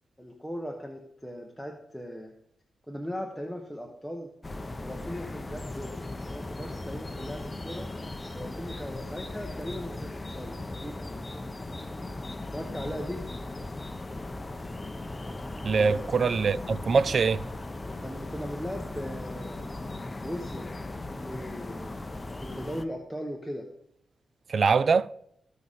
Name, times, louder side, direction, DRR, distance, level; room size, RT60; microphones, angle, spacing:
voice 1, 0.2-2.3 2.9-4.3 4.8-7.9 8.3-11.3 12.5-13.2 15.7-16.0 18.0-19.6 20.2-20.7 21.3-21.9 22.4-23.7, equal, ahead, 1.1 m, -38 dB
sound 1, 4.4-22.8, left 2 dB, 25° left, 0.7 m, -38 dB
voice 2, 15.6-17.4 24.5-25.1, right 5 dB, 60° right, 0.4 m, -23 dB
14.5 x 5.0 x 4.2 m
cardioid pair, 70°, 0 cm